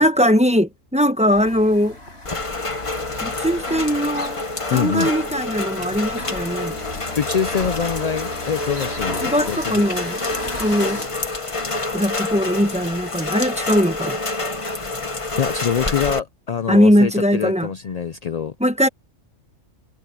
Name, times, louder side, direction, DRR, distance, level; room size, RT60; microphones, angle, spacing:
voice 1, 0.0-2.0 3.2-4.4 4.7-6.8 9.2-10.2 10.6-11.0 11.9-14.2 16.7-17.7 18.6-18.9, equal, 5° right, 1.0 m, -20 dB
sound 1, 1.3-11.1, left 1 dB, 50° left, 7.9 m, -36 dB
Rain, 2.2-16.2, left 2 dB, 25° left, 1.2 m, -27 dB
voice 2, 4.7-5.1 7.2-9.9 15.0-18.5, left 7 dB, 70° left, 0.3 m, -25 dB
omnidirectional pair, 1.4 m